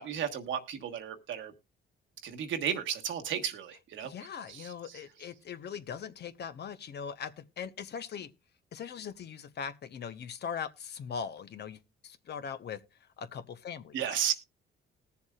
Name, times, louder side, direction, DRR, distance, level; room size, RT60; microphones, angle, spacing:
voice 1, 0.0-1.5 2.2-4.1 13.9-14.3, right 8 dB, 75° right, 1.3 m, -33 dB
voice 2, 4.0-8.3 8.7-12.8 13.2-14.3, left 7 dB, 55° left, 0.9 m, -40 dB
19.5 x 7.0 x 2.3 m
cardioid pair, 90°, 20 cm